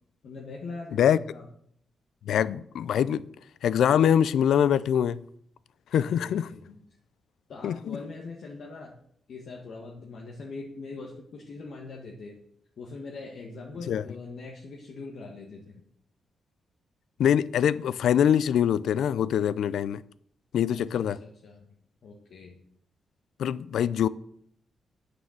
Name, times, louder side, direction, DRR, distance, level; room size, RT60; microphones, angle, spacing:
voice 1, 0.2-1.4 6.0-6.8 7.5-8.9 9.3-12.4 12.8-15.8 20.7-21.7 22.0-22.6, left 3 dB, 60° left, 1.7 m, -42 dB
voice 2, 2.3-3.2 3.6-5.2 5.9-6.5 7.6-8.0 13.9-14.0 17.2-20.0 20.5-21.2 23.4-24.1, left 9 dB, 80° left, 0.4 m, -24 dB
9.4 x 6.8 x 7.3 m
cardioid pair, 120°, 0 cm